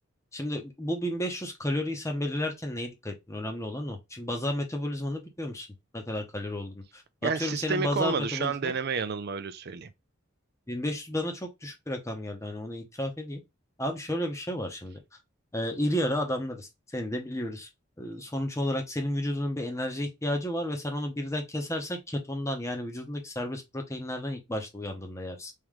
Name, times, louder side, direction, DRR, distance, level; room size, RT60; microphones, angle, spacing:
voice 1, 0.3-5.7 5.9-8.7 10.7-13.4 13.8-15.0 15.5-17.7 18.0-25.5, left 1 dB, 15° left, 0.9 m, -32 dB
voice 2, 7.2-9.9, right 5 dB, 50° right, 0.5 m, -30 dB
3.7 x 3.1 x 3.1 m
head